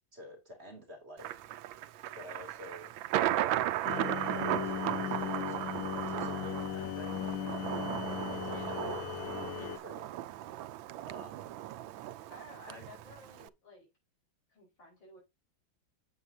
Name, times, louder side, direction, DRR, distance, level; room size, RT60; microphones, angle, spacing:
voice 1, 0.1-1.4 2.1-2.9 3.3-7.4 7.9-9.1 9.5-10.1 11.0-11.5 12.7-12.8, equal, 30° right, 3.1 m, -50 dB
Thunder, 1.2-13.5, right 13 dB, 80° right, 1.4 m, -36 dB
sound 1, 3.8-9.8, left 10 dB, 85° left, 1.5 m, -37 dB
voice 2, 12.3-13.9 14.5-15.2, left 1 dB, 65° left, 5.4 m, -54 dB
8.9 x 8.2 x 2.7 m
omnidirectional pair, 2.1 m